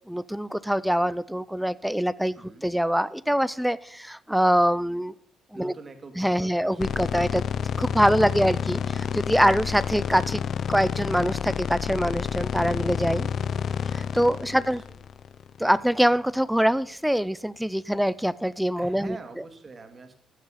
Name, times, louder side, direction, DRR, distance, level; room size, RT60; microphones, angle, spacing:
voice 1, 0.1-5.1 5.5-5.7 6.2-7.4 7.8-10.4 10.7-13.3 13.9-14.8 15.6-19.2, equal, ahead, 18 dB, 0.5 m, -24 dB
voice 2, 2.4-2.7 5.5-7.0 8.1-8.7 14.5-15.0 17.9-18.0 18.8-20.1, right 3 dB, 30° right, 7 dB, 2.1 m, -45 dB
sound 1, 6.8-16.0, left 7 dB, 55° left, 0.5 m, -29 dB
15.0 x 7.4 x 5.6 m, 0.68 s
cardioid pair, 105°, 0 cm